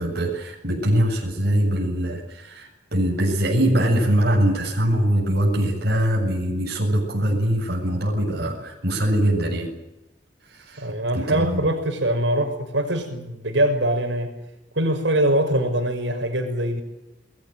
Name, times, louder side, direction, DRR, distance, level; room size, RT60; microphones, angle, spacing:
voice 1, 0.0-9.7 10.5-11.6, right 1 dB, 60° right, -1 dB, 7.5 m, -22 dB
voice 2, 10.8-14.3 14.8-16.8, right 1 dB, 85° right, 6 dB, 6.1 m, -23 dB
29.0 x 21.0 x 7.9 m, 0.92 s
head